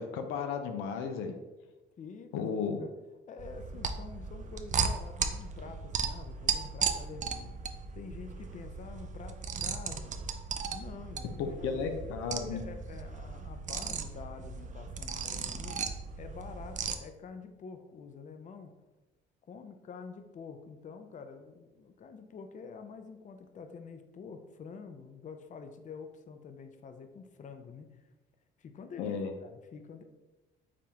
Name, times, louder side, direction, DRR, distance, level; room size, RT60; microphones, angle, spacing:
voice 1, 0.0-1.3 2.3-2.8 11.4-12.6 29.0-29.3, left 6 dB, 85° left, 6 dB, 0.5 m, -34 dB
voice 2, 2.0-2.9 3.3-7.5 7.9-10.1 10.7-12.0 12.5-15.8 16.2-18.7 19.5-27.9 28.6-29.1 29.4-30.0, left 5 dB, 40° left, 7 dB, 0.5 m, -47 dB
sound 1, 3.4-16.9, right 5 dB, 40° right, 0.4 m, -36 dB
4.8 x 3.5 x 2.8 m, 1.1 s
supercardioid pair, 80°, 21 cm